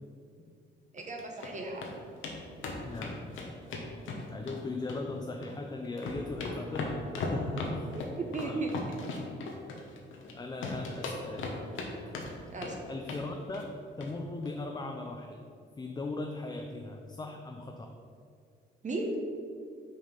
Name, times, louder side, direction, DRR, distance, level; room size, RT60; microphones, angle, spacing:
voice 1, 0.9-1.9 8.2-9.0 12.5-12.8 18.8-19.2, right 2 dB, 40° right, 1 dB, 1.0 m, -35 dB
sound 1, 1.0-1.5 1.8-1.9 2.2-2.4 2.6-4.6 4.9-5.6 5.8-10.3 10.6-11.9 12.1-12.7 13.0-13.3 13.5-13.7 14.0-14.1 14.4-14.5, left 3 dB, 80° left, 1.1 m, -37 dB
voice 2, 2.8-3.4 4.3-7.9 8.3-8.6 10.3-11.6 12.9-15.4 15.8-18.0, left 2 dB, 20° left, 3 dB, 0.5 m, -38 dB
6.2 x 4.3 x 5.4 m, 2.3 s
cardioid pair, 90°, 20 cm